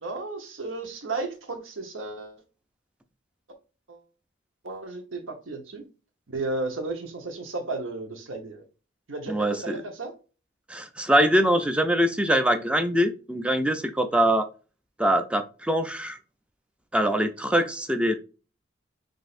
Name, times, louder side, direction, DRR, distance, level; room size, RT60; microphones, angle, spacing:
voice 1, 0.0-2.4 3.9-4.0 4.6-5.8 6.3-8.6 9.1-10.1, right 3 dB, 75° right, 1.1 m, -34 dB
voice 2, 9.3-9.7 10.7-14.5 15.0-16.2 16.9-18.2, equal, 5° right, 0.4 m, -23 dB
6.1 x 2.6 x 2.5 m
head